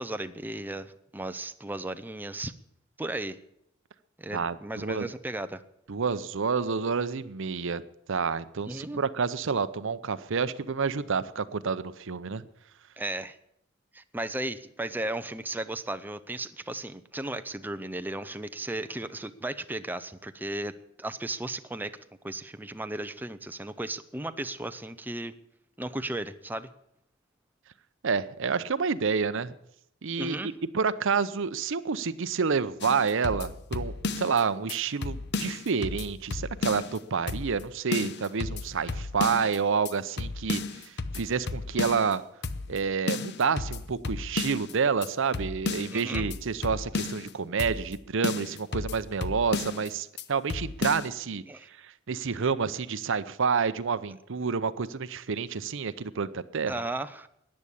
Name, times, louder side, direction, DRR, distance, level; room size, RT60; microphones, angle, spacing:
voice 1, 0.0-2.5 3.0-3.4 4.2-5.6 8.7-9.0 13.0-13.4 13.9-22.0 22.2-25.3 25.8-26.7 30.2-30.5 45.9-46.3 51.5-51.7 56.7-57.3, right 1 dB, 10° right, 10 dB, 0.5 m, -35 dB
voice 2, 4.3-5.1 5.9-7.8 8.1-12.5 28.0-29.5 30.0-42.2 42.7-51.4 51.8-56.7, right 5 dB, 65° right, 15 dB, 0.7 m, -29 dB
sound 1, 32.8-34.4 34.7-34.8 35.0-37.0 37.3-37.6 37.9-39.6 39.9-40.0 40.2-42.1 42.4-42.8 43.1-44.7 45.0-45.1 45.3-47.3 47.6-48.0 48.2-49.9 50.2-50.3 50.5-51.1, left 3 dB, 55° left, 0.8 m, -33 dB
14.0 x 9.8 x 8.5 m, 0.77 s
head